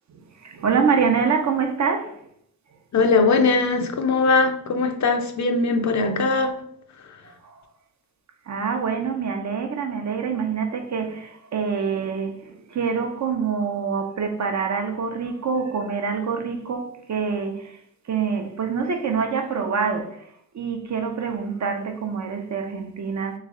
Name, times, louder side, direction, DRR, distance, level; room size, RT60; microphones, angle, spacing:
voice 1, 0.1-2.2 7.4-7.6 8.5-17.8 18.1-20.3 20.5-23.4, right 6 dB, 50° right, 0.8 m, -26 dB
voice 2, 2.9-6.5 7.1-7.2, left 3 dB, 55° left, 0.7 m, -20 dB
3.2 x 3.1 x 3.7 m
cardioid pair, 65°, 35 cm